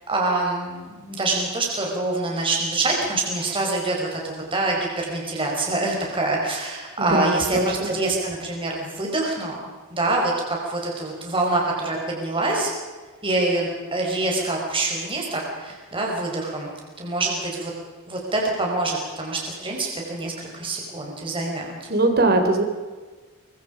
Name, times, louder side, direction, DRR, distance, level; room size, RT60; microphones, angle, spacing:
voice 1, 0.1-9.6 9.9-12.7 13.2-16.7 17.0-17.7 18.1-21.7, right 2 dB, 25° right, -1 dB, 5.1 m, -25 dB
voice 2, 7.0-7.9 21.9-22.6, right 2 dB, 45° right, 5 dB, 3.9 m, -21 dB
24.5 x 24.0 x 5.2 m, 1.4 s
head